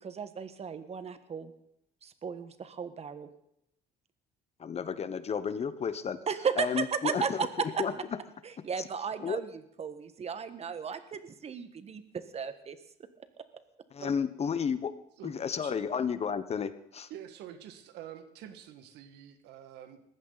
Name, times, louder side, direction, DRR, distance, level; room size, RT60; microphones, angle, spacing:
voice 1, 0.0-1.5 2.0-3.3 6.3-7.8 8.4-9.5 9.8-12.8 13.4-13.5, right 6 dB, 40° right, 11 dB, 1.5 m, -35 dB
voice 2, 4.6-6.2 6.6-7.5 7.8-7.9 9.2-9.4 13.9-14.9 15.2-17.1, left 7 dB, 40° left, 13 dB, 1.0 m, -32 dB
voice 3, 17.1-20.0, right 10 dB, 85° right, 9 dB, 1.8 m, -46 dB
20.5 x 15.5 x 4.1 m, 0.76 s
cardioid pair, 110°, 17 cm